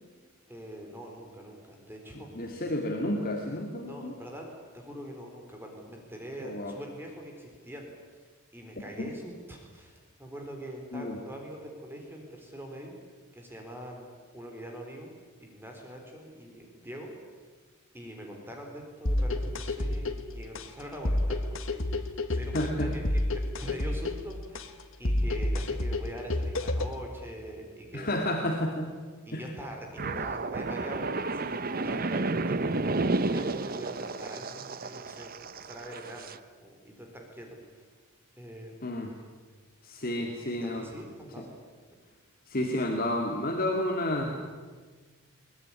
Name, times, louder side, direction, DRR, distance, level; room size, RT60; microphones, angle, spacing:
voice 1, 0.5-2.6 3.8-4.5 4.7-8.3 8.5-13.0 13.3-15.1 15.4-17.5 17.9-28.2 29.3-36.3 36.6-37.9 38.4-38.8 40.6-41.5 41.9-42.0, equal, 10° right, 1 dB, 4.0 m, -44 dB
voice 2, 2.3-4.1 6.4-6.7 10.9-11.2 22.5-22.9 27.9-28.9 29.3-29.4 30.0-30.2 38.8-39.1 39.8-40.8 42.5-44.4, left 1 dB, 40° left, 1 dB, 2.4 m, -31 dB
sound 1, 19.1-27.1, left 1 dB, 65° left, 1.7 m, -30 dB
sound 2, 30.0-36.4, right 3 dB, 40° right, 0.9 m, -31 dB
22.0 x 20.5 x 9.9 m, 1.4 s
head